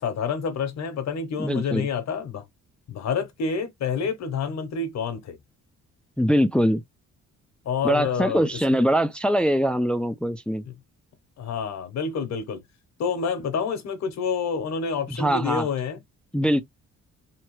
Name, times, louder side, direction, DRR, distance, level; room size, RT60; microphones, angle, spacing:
voice 1, 0.0-2.4 2.9-5.4 7.6-8.5 11.4-12.6 13.0-16.0, left 6 dB, 60° left, 0.9 m, -28 dB
voice 2, 1.4-1.9 6.2-6.8 7.8-10.6 15.1-15.7 16.3-16.6, equal, 5° left, 0.3 m, -22 dB
2.9 x 2.2 x 3.1 m
cardioid pair, 90°, 30 cm